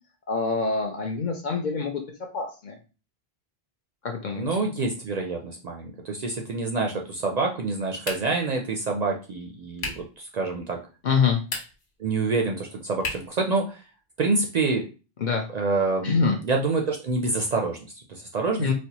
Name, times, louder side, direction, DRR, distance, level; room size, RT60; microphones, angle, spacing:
voice 1, 0.3-2.0 2.3-2.8 4.0-4.4 11.0-11.4 15.2-15.5 16.0-16.4 18.6-18.7, left 5 dB, 55° left, 3 dB, 0.6 m, -25 dB
voice 2, 4.4-10.8 12.0-13.8 14.2-14.9 15.5-18.7, right 3 dB, 55° right, 2 dB, 0.5 m, -27 dB
sound 1, 8.0-8.5 9.8-10.1 11.4-11.9 13.0-13.4, left 3 dB, 80° left, 1.2 m, -34 dB
4.1 x 2.2 x 2.8 m, 0.33 s
omnidirectional pair, 1.1 m